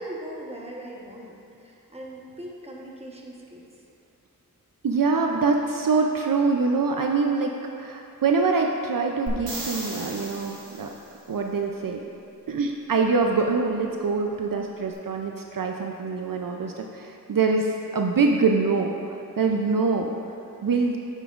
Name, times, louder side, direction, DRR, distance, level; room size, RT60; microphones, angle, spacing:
voice 1, 0.0-3.9, right 1 dB, 15° right, -3 dB, 1.1 m, -40 dB
voice 2, 4.8-10.9 11.3-12.0 12.5-20.1 20.6-21.0, right 4 dB, 70° right, 2 dB, 0.5 m, -24 dB
sound 1, 9.3-11.1 14.9-15.0, right 1 dB, 85° right, 1.3 m, -36 dB
9.5 x 7.1 x 2.4 m, 2.6 s
wide cardioid pair, 50°, 35 cm